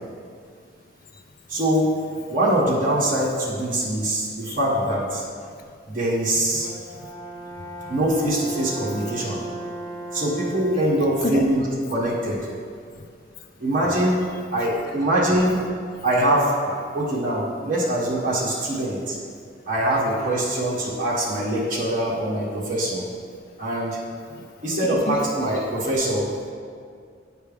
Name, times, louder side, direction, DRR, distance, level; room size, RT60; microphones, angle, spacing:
voice 1, 1.5-1.9 2.3-5.2 5.9-6.7 7.9-9.4 10.1-11.6 11.9-12.5 13.6-14.2 14.5-15.6 16.0-19.2 19.7-23.0 23.6-24.0 24.6-26.5, right 1 dB, 45° right, -6 dB, 1.5 m, -23 dB
voice 2, 6.6-7.1 7.6-8.0 11.2-11.4 12.9-13.1 13.4-13.5 24.3-24.8 25.1-25.2 25.7-25.9, left 2 dB, 50° left, 5 dB, 0.4 m, -33 dB
Brass instrument, 6.6-11.0, right 2 dB, 65° right, 1.7 m, -36 dB
9.2 x 4.6 x 3.5 m, 2.2 s
head